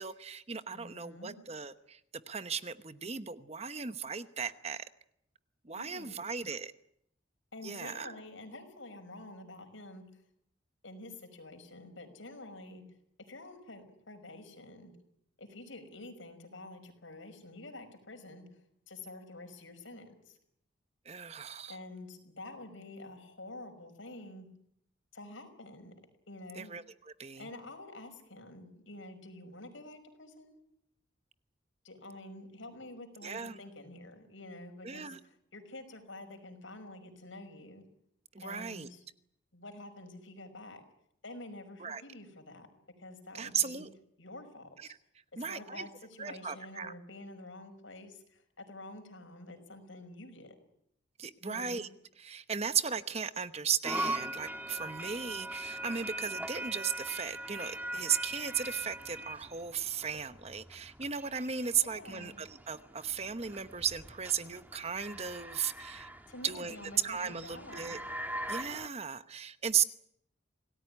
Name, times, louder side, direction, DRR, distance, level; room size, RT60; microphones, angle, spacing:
voice 1, 0.0-4.8 5.6-6.7 7.6-8.1 21.0-21.8 26.5-27.5 33.2-33.6 34.8-35.2 38.3-38.9 41.8-42.0 43.3-43.9 44.8-44.9 45.4-45.9 46.2-46.9 51.2-51.9 52.2-66.1 66.4-66.8 67.0-68.0 68.5-69.8, right 7 dB, 30° right, 12 dB, 1.0 m, -36 dB
voice 2, 0.7-1.4 5.8-6.2 7.5-10.2 10.8-12.8 13.3-14.9 15.4-20.4 21.7-24.5 25.1-25.9 26.3-26.7 27.4-30.6 31.8-37.8 38.4-39.0 39.5-40.8 41.2-42.7 43.0-43.9 44.2-44.9 45.3-50.6 51.4-51.8 61.8-62.3 66.3-68.0, left 2 dB, 75° left, 6 dB, 5.6 m, -48 dB
sound 1, 53.8-68.9, right 1 dB, 10° right, 1.5 m, -41 dB
27.0 x 18.5 x 10.0 m, 0.74 s
head